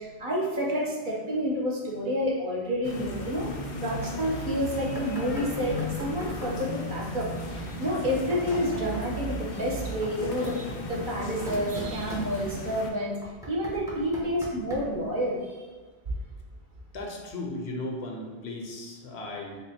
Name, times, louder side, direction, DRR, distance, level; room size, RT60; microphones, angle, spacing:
voice 1, 0.0-3.5 3.8-13.2 13.5-15.6, equal, 55° right, -3 dB, 0.8 m, -29 dB
sound 1, 2.8-12.9, left 2 dB, 55° left, 0.5 m, -36 dB
Knock, 4.9-6.7 7.9-9.1 9.8-12.7 13.2-15.0, equal, 5° right, 0.5 m, -40 dB
voice 2, 16.9-19.6, left 2 dB, 75° left, 0 dB, 0.9 m, -36 dB
3.5 x 2.1 x 4.1 m, 1.3 s
omnidirectional pair, 1.1 m